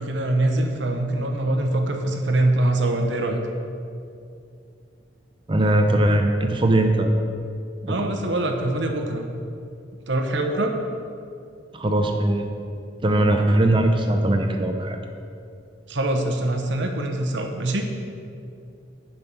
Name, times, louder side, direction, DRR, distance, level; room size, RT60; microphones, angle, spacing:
voice 1, 0.0-3.4 7.9-9.3 10.1-10.7 15.9-17.8, right 1 dB, 75° right, 4 dB, 1.0 m, -23 dB
voice 2, 5.5-7.1 7.8-8.0 11.7-12.5 13.0-15.0, right 1 dB, 25° right, 5 dB, 0.6 m, -20 dB
10.0 x 5.6 x 5.5 m, 2.5 s
head